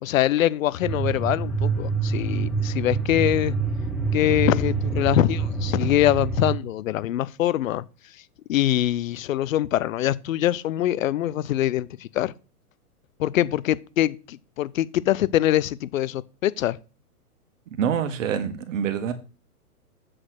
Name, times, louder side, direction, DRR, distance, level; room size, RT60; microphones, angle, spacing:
voice 1, 0.0-3.5 4.1-7.8 8.5-12.3 13.2-16.8, left 13 dB, 60° left, 0.7 m, -23 dB
sound 1, 0.8-6.5, right 4 dB, ahead, 0.4 m, -26 dB
voice 2, 17.8-19.1, right 8 dB, 55° right, 1.5 m, -26 dB
7.6 x 4.2 x 6.4 m
hypercardioid pair, 140°, 46 cm